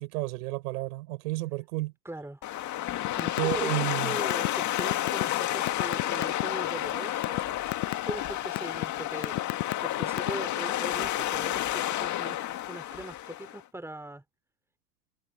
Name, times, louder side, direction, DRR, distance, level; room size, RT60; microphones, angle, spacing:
voice 1, 0.0-1.9 3.4-4.2, right 19 dB, 65° right, 6.2 m, -31 dB
voice 2, 2.0-2.4 3.2-7.6 8.1-9.5 9.8-12.4 12.7-14.2, right 1 dB, 5° right, 4.0 m, -40 dB
sound 1, 2.4-13.6, left 13 dB, 35° left, 2.1 m, -31 dB
sound 2, 3.0-3.6 3.8-6.4 6.9-7.4 7.7-8.1 8.6-8.8 9.2-10.5, left 21 dB, 60° left, 0.8 m, -30 dB
hypercardioid pair, 100°, 49 cm